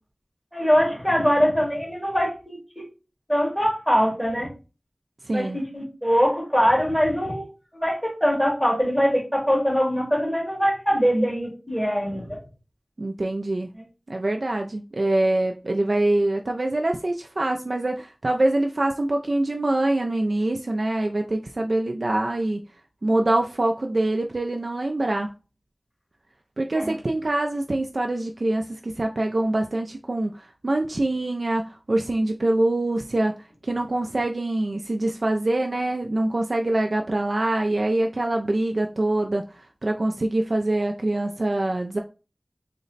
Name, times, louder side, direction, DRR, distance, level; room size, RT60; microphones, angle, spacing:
voice 1, 0.5-2.9 3.3-4.5 5.3-7.5 7.7-12.4 13.7-13.8 26.7-26.9, equal, ahead, -1 dB, 1.8 m, -22 dB
voice 2, 5.2-5.6 13.0-13.7 14.1-22.6 23.0-25.3 26.6-33.4 33.6-42.0, right 2 dB, 70° right, 3 dB, 0.3 m, -24 dB
3.9 x 2.1 x 3.8 m, 0.32 s
wide cardioid pair, 55°, 0 cm